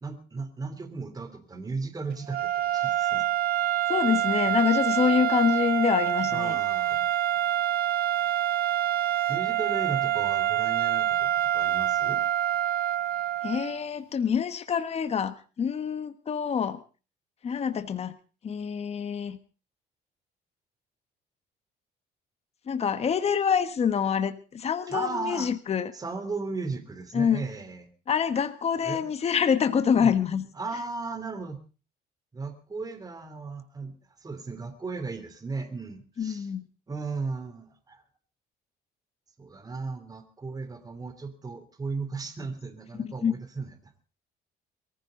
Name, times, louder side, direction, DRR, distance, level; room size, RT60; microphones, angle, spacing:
voice 1, 0.0-3.2 6.3-7.0 9.3-12.2 24.9-25.5 25.9-27.9 28.8-29.0 29.9-31.6 32.3-36.5 36.9-38.0 39.4-43.9, right 4 dB, 20° right, 8 dB, 3.2 m, -36 dB
sound 1, 2.3-13.8, right 12 dB, 65° right, 1.3 m, -26 dB
voice 2, 3.9-6.6 13.4-16.8 17.4-18.1 18.4-19.4 22.7-25.9 27.1-27.4 28.1-30.4 36.2-36.7 43.2-43.3, left 7 dB, 40° left, 10 dB, 1.4 m, -26 dB
22.5 x 15.0 x 3.8 m, 0.36 s
cardioid pair, 110°, 17 cm